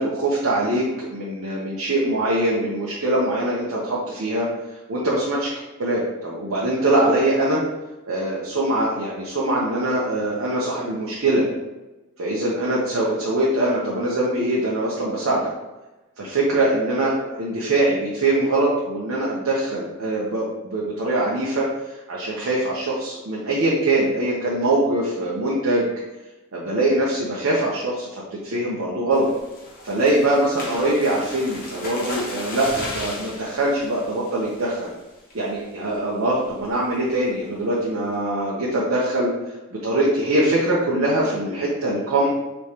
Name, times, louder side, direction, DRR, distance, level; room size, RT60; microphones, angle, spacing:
voice 1, 0.0-4.5 4.9-5.5 5.8-7.6 8.1-11.4 12.2-15.5 16.2-25.9 26.5-29.3 29.8-34.9 35.3-39.3 39.7-42.3, right 1 dB, 65° right, -4 dB, 0.8 m, -23 dB
sound 1, 29.1-34.9 35.3-35.6 35.9-36.0 36.4-36.7, left 1 dB, 40° left, 1.0 m, -36 dB
4.8 x 3.1 x 2.8 m, 1.1 s
head